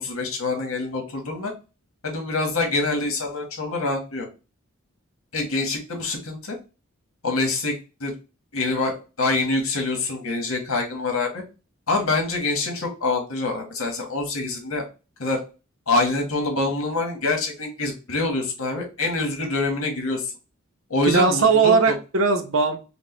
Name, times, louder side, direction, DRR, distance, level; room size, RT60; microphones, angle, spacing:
voice 1, 0.0-1.5 2.0-4.3 5.3-6.6 7.2-7.7 8.0-8.1 8.5-11.4 11.9-14.8 15.2-15.4 15.9-20.3 20.9-21.9, left 3 dB, 85° left, 2 dB, 1.7 m, -25 dB
voice 2, 21.0-22.8, right 4 dB, 70° right, 5 dB, 0.9 m, -19 dB
5.3 x 2.4 x 4.0 m, 0.31 s
head